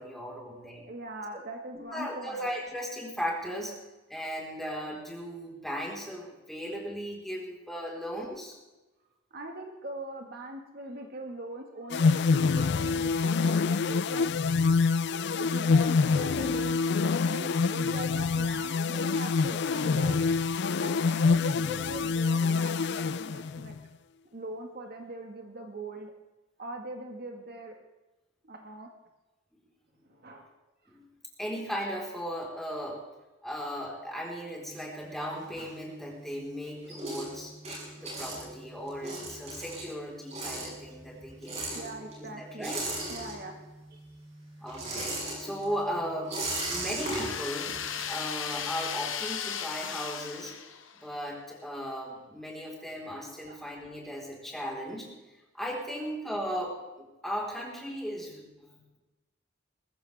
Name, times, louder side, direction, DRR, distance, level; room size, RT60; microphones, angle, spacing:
voice 1, 0.0-0.9 1.9-3.8 4.1-8.5 30.9-31.1 31.4-33.0 33.4-37.5 38.0-41.6 42.4-42.8 44.6-46.4 46.7-47.8 48.1-50.6 50.9-55.1 55.5-59.0, equal, ahead, -3 dB, 4.2 m, -37 dB
voice 2, 0.9-2.5 9.3-14.3 15.3-20.2 20.7-23.7 24.3-26.1 26.6-27.8 28.4-28.9 30.0-30.5 41.7-42.7 43.1-43.5 43.9-44.0 53.1-53.6 55.9-56.0, right 1 dB, 50° right, 3 dB, 1.7 m, -41 dB
sound 1, 11.9-23.8, left 4 dB, 60° left, 0.4 m, -26 dB
sound 2, 34.6-36.2 36.6-43.8 44.1-48.8, right 2 dB, 35° right, 6.1 m, -37 dB
sound 3, 47.0-51.1, left 8 dB, 80° left, 1.2 m, -36 dB
21.0 x 15.0 x 3.5 m, 1.1 s
head